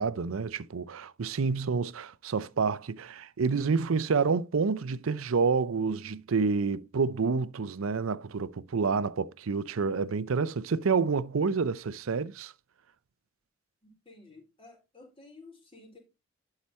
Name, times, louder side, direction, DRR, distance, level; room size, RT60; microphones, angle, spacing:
voice 1, 0.0-12.5, right 5 dB, 80° right, 0.5 m, -28 dB
voice 2, 13.8-16.0, left 3 dB, 25° left, 4.0 m, -53 dB
11.5 x 4.9 x 4.2 m
head